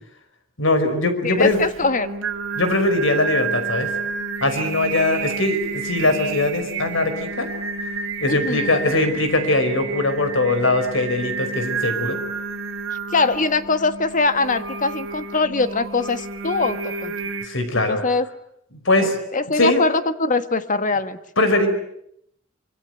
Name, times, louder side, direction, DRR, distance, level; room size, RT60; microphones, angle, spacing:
voice 1, 0.6-1.6 2.6-3.9 4.4-7.5 8.2-12.2 17.4-18.0 18.8-19.2 19.6-19.8 21.4-21.7, left 2 dB, 70° left, 9 dB, 5.2 m, -21 dB
voice 2, 1.2-2.1 8.3-8.9 13.1-17.1 17.9-18.2 19.0-21.2, left 3 dB, 40° left, 11 dB, 1.5 m, -22 dB
Singing, 1.5-17.5, right 4 dB, 80° right, 3.2 m, -30 dB
25.5 x 24.0 x 9.3 m, 0.74 s
head